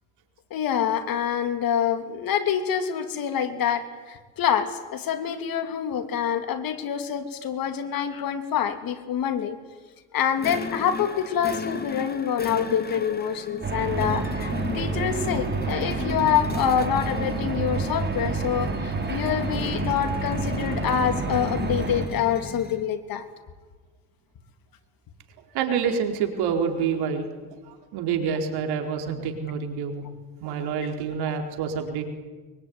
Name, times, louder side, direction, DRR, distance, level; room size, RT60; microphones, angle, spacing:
voice 1, 0.5-9.6 10.1-23.2, left 8 dB, 60° left, 8 dB, 3.0 m, -26 dB
sound 1, 10.4-22.9, left 4 dB, 25° left, 2.6 m, -36 dB
sound 2, 13.6-22.1, right 4 dB, 30° right, 5.9 m, -29 dB
voice 2, 25.5-27.3 27.7-30.0 30.4-32.0, right 6 dB, 75° right, 4 dB, 4.5 m, -27 dB
24.0 x 23.5 x 9.7 m, 1.3 s
supercardioid pair, 85°, 39 cm